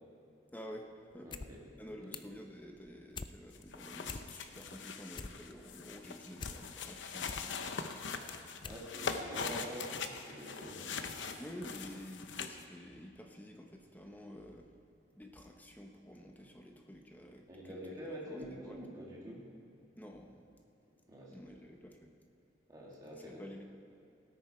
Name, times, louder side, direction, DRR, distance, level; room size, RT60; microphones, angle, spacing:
voice 1, 0.5-1.3 1.8-8.6 11.4-14.7 15.1-17.8 18.3-18.8 20.0-20.4 21.3-22.1 23.2-23.6, equal, 10° left, 2 dB, 1.0 m, -50 dB
sound 1, 1.1-1.5 1.8-2.4 2.8-3.3 3.7-3.8 4.0-4.6 4.9-6.6 7.0-7.5 8.0-8.1 8.6-8.9 9.2-9.3, left 4 dB, 25° left, 0.3 m, -45 dB
voice 2, 1.2-1.6 2.0-2.2 8.6-11.4 16.4-16.5 17.5-19.5 21.1-21.4 22.7-23.5, equal, 20° right, -4 dB, 2.5 m, -46 dB
sound 2, 3.5-12.6, left 5 dB, 80° left, 0.8 m, -42 dB
17.5 x 9.9 x 4.4 m, 2.7 s
head